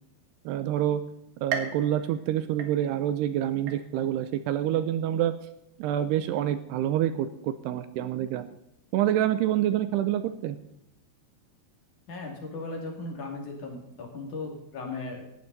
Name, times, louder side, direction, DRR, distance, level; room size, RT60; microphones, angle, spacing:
voice 1, 0.5-1.0 1.4-5.4 5.8-8.5 8.9-10.6, right 11 dB, 80° right, 12 dB, 2.6 m, -27 dB
sound 1, 1.5-3.2 3.7-4.3 4.8-4.9 5.8-5.9, right 6 dB, 60° right, 3.1 m, -37 dB
voice 2, 12.1-15.3, left 3 dB, 50° left, 1 dB, 3.7 m, -37 dB
17.5 x 11.5 x 4.1 m, 0.84 s
omnidirectional pair, 5.0 m